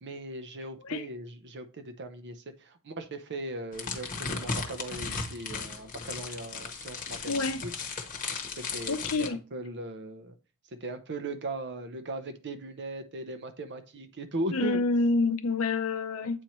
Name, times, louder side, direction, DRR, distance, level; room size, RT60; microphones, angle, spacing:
voice 1, 0.0-7.7 8.6-10.3 10.7-14.8, right 1 dB, 50° right, 0.7 m, -38 dB
sound 1, 3.7-9.3, left 4 dB, 35° left, 1.0 m, -36 dB
voice 2, 7.3-7.6 8.9-9.4 14.5-16.4, left 3 dB, 65° left, 0.6 m, -27 dB
7.9 x 4.4 x 3.0 m
head